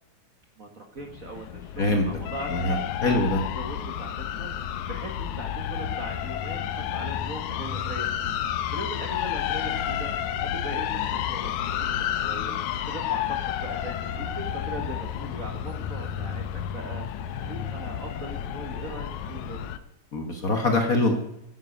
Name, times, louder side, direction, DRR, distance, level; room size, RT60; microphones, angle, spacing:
voice 1, 0.6-12.5 12.9-13.2 13.6-16.5 16.7-19.7, right 2 dB, 40° right, 2 dB, 1.2 m, -40 dB
sound 1, 1.0-19.8, left 10 dB, 75° left, 2.0 m, -31 dB
voice 2, 3.0-3.4 20.1-21.1, left 2 dB, 50° left, 4 dB, 1.1 m, -23 dB
12.5 x 9.6 x 5.2 m, 0.82 s
omnidirectional pair, 3.5 m